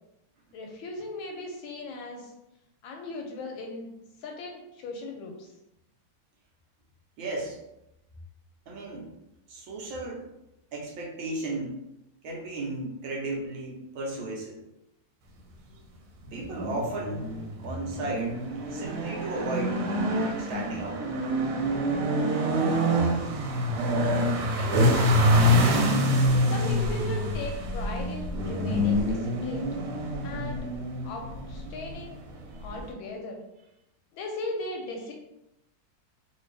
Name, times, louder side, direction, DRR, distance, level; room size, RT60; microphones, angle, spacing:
voice 1, 0.5-2.3 2.8-3.9 4.2-5.5 24.6-25.6 26.5-29.7 30.2-30.7 31.0-32.2 32.6-33.4 34.1-35.1, left 2 dB, 75° left, 2 dB, 1.2 m, -37 dB
voice 2, 7.2-7.6 8.7-9.1 9.5-10.3 10.7-11.8 12.2-14.6 16.3-17.3 17.6-18.4 18.7-19.8 20.4-21.0, right 2 dB, 70° right, -2 dB, 1.4 m, -34 dB
sound 1, 16.3-32.9, equal, 90° right, 1.6 m, -26 dB
3.4 x 2.7 x 3.2 m, 0.87 s
omnidirectional pair, 2.4 m